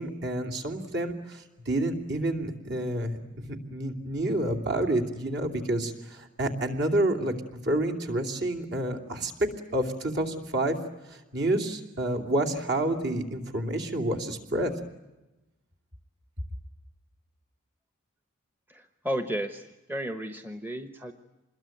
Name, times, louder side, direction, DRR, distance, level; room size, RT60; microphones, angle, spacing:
voice 1, 0.0-10.8 11.1-14.7, right 1 dB, 55° right, 4 dB, 3.0 m, -29 dB
voice 2, 18.7-21.1, right 1 dB, 10° right, 8 dB, 1.0 m, -33 dB
26.5 x 21.5 x 9.2 m, 1.0 s
head